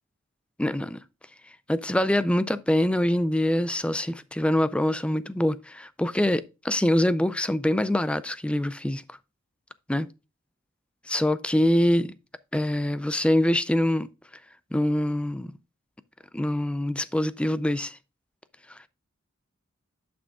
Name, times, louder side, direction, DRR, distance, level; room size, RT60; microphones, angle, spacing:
voice 1, 0.6-1.0 1.7-9.0 9.9-10.1 11.1-12.1 12.5-14.1 14.7-15.5 16.3-18.0, left 1 dB, 5° left, 0.3 m, -24 dB
11.0 x 6.1 x 2.3 m
head